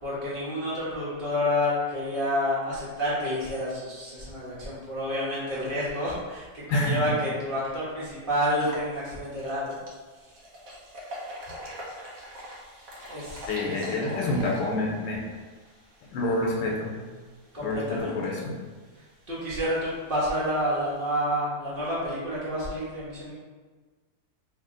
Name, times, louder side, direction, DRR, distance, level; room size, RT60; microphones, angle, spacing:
voice 1, 0.0-9.7 13.1-13.9 17.5-18.4 19.3-23.3, equal, 35° right, -8 dB, 1.1 m, -29 dB
voice 2, 6.7-7.2 13.5-15.2 16.1-17.0 17.6-18.6, left 1 dB, 90° left, -2 dB, 1.4 m, -27 dB
sound 1, 7.2-7.3 7.7-7.8 8.5-21.2, equal, 55° right, 1.1 m, -45 dB
3.2 x 2.8 x 3.7 m, 1.4 s
omnidirectional pair, 1.9 m